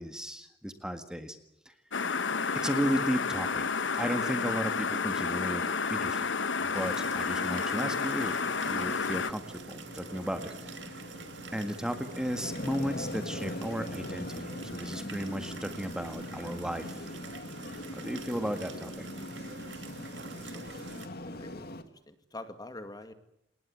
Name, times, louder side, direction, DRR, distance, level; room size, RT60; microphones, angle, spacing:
voice 1, 0.0-1.4 1.7-1.8 2.6-3.6 3.9-6.3 6.6-9.4 9.7-11.1 11.5-17.1 17.9-19.1, equal, 5° right, 7 dB, 1.8 m, -34 dB
sound 1, 1.9-9.3, left 5 dB, 90° left, 1.2 m, -31 dB
sound 2, 6.7-21.1, right 4 dB, 70° right, 2.8 m, -47 dB
sound 3, 8.6-21.8, left 1 dB, 60° left, 2.1 m, -41 dB
voice 2, 19.8-20.9 21.3-23.1, left 2 dB, 20° left, 9 dB, 2.2 m, -47 dB
28.0 x 20.0 x 9.5 m, 0.78 s
head